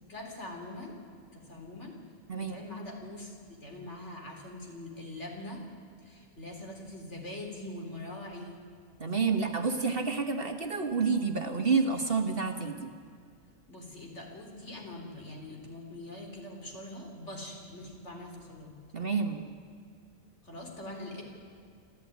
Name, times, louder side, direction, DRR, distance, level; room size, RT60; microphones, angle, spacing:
voice 1, 0.1-0.9 1.3-1.9 2.4-3.3 3.6-5.6 6.0-8.6 13.7-18.7 20.4-21.2, left 1 dB, 55° left, 1 dB, 4.0 m, -43 dB
voice 2, 9.0-12.9 18.9-19.5, right 5 dB, 45° right, 5 dB, 1.5 m, -29 dB
27.0 x 13.5 x 9.5 m, 2.2 s
omnidirectional pair, 1.4 m